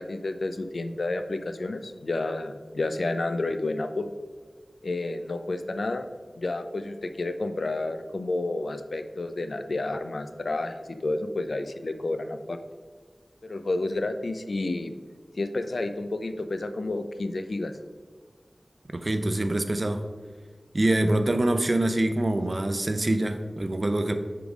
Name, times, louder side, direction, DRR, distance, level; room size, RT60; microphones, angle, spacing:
voice 1, 0.0-4.1 4.8-6.1 6.4-10.7 11.0-12.6 13.4-14.9 15.4-17.7, left 2 dB, 75° left, 8 dB, 0.4 m, -30 dB
voice 2, 18.9-20.0 20.7-24.1, right 1 dB, 45° right, 8 dB, 0.6 m, -25 dB
7.0 x 3.9 x 4.8 m, 1.5 s
wide cardioid pair, 65°, 0 cm